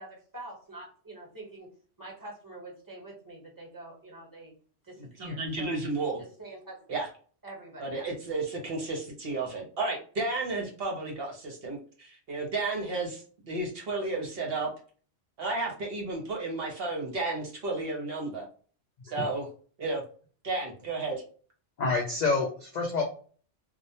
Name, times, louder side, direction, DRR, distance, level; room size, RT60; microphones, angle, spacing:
voice 1, 0.0-1.7 2.0-4.5 4.8-5.8 6.2-6.9 7.4-8.1, right 2 dB, 20° right, -2 dB, 0.9 m, -45 dB
voice 2, 5.2-6.2 6.9-7.1 7.8-14.7 15.4-18.5 19.0-19.5 19.8-20.0 20.4-21.2, right 3 dB, 60° right, 0 dB, 0.8 m, -32 dB
voice 3, 21.8-23.0, left 4 dB, 60° left, 0 dB, 0.4 m, -27 dB
2.3 x 2.1 x 2.7 m, 0.42 s
omnidirectional pair, 1.2 m